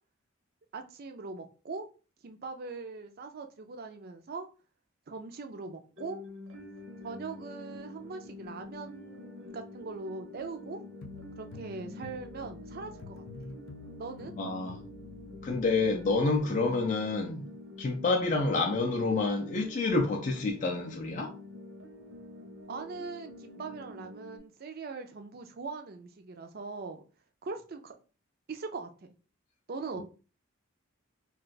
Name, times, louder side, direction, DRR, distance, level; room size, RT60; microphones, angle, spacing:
voice 1, 0.7-1.8 2.2-4.5 5.1-6.2 7.0-10.8 11.4-13.2 14.0-14.3 22.7-27.0 27.4-27.9 28.5-28.9 29.7-30.0, right 4 dB, 50° right, 0.4 m, -41 dB
sound 1, 6.0-24.4, left 1 dB, 65° right, 0.8 m, -47 dB
sound 2, 11.0-16.3, left 4 dB, 90° left, 0.5 m, -48 dB
voice 2, 14.4-14.8 15.4-17.5 17.8-21.3 30.0-30.1, left 3 dB, 40° left, 0.4 m, -28 dB
2.5 x 2.3 x 3.8 m
head